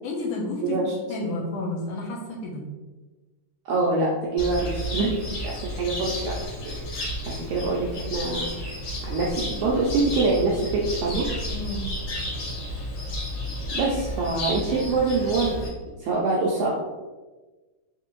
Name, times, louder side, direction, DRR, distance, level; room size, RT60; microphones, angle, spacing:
voice 1, 0.0-0.8 1.1-2.6 11.5-11.9, left 2 dB, 75° left, -1 dB, 2.1 m, -31 dB
voice 2, 0.6-0.9 3.7-6.3 6.6-6.8 7.3-8.5 9.0-11.2 13.7-15.6 16.0-16.7, right 3 dB, 85° right, -4 dB, 1.7 m, -25 dB
Cricket, 4.4-15.7, equal, 50° left, 1.8 m, -32 dB
5.8 x 2.7 x 3.0 m, 1.2 s
omnidirectional pair, 4.0 m